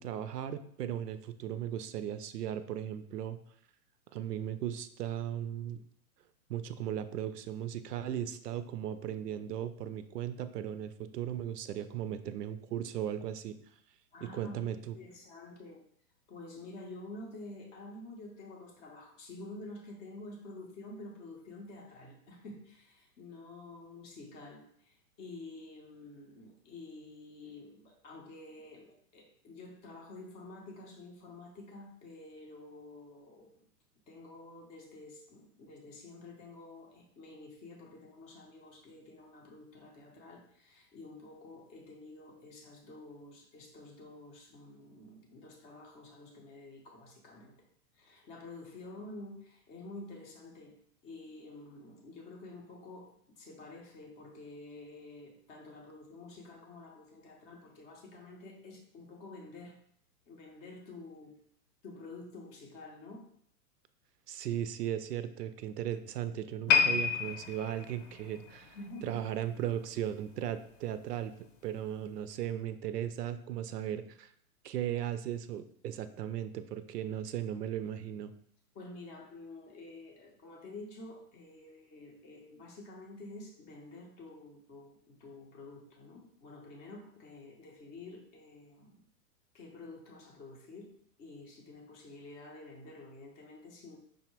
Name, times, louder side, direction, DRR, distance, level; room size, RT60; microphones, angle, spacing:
voice 1, 0.0-3.4 4.1-5.8 6.5-13.6 14.2-14.9 64.3-68.8 69.0-71.3 71.6-74.3 74.6-78.3, right 10 dB, 90° right, 12 dB, 0.6 m, -37 dB
voice 2, 14.1-14.6 14.9-15.8 16.3-33.6 34.1-47.5 47.9-50.7 51.0-59.8 60.3-61.3 61.8-63.3 68.7-69.2 78.7-89.0 89.5-94.0, left 2 dB, 15° left, 0 dB, 0.5 m, -49 dB
sound 1, 66.7-70.0 70.3-70.6 71.2-71.3, left 6 dB, 55° left, 0.7 m, -31 dB
5.4 x 2.1 x 4.4 m, 0.66 s
hypercardioid pair, 135°, 46 cm